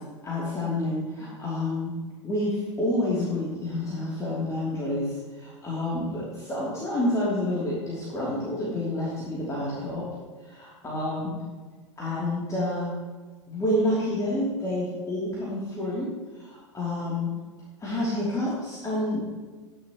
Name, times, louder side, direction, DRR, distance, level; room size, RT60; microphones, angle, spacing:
voice 1, 0.2-1.9 2.2-10.1 10.4-11.4 12.0-12.9 13.5-16.1 16.3-17.3 17.8-19.3, left 1 dB, 20° left, -7 dB, 3.0 m, -29 dB
12.5 x 10.5 x 3.1 m, 1.3 s
figure-of-eight pair, 85°, 15 cm